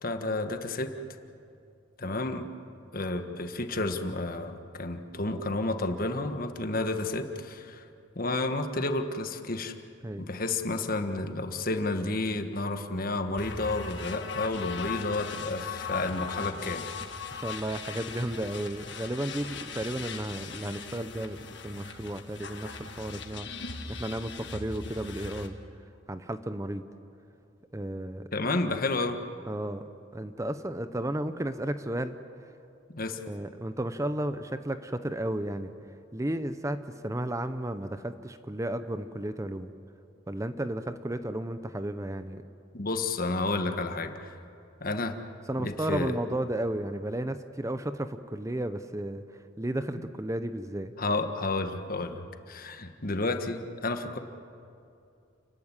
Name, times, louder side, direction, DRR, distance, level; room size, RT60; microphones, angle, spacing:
voice 1, 0.0-0.9 2.0-2.5 2.9-7.9 8.1-9.8 10.2-16.8 28.3-29.2 32.9-33.2 42.7-44.3 44.8-45.2 45.6-46.1 50.0-50.1 51.0-54.2, left 2 dB, 50° left, 7 dB, 1.5 m, -31 dB
sound 1, 13.4-25.5, left 5 dB, 65° left, 1.8 m, -39 dB
voice 2, 17.3-21.4 21.6-23.5 23.9-25.5 26.1-26.8 27.7-28.2 29.5-29.8 30.1-32.1 33.3-35.7 36.1-36.8 37.0-39.7 40.3-42.4 45.5-49.2 49.6-50.9, right 1 dB, 15° right, 10 dB, 0.7 m, -33 dB
29.5 x 14.5 x 9.9 m, 2.6 s
head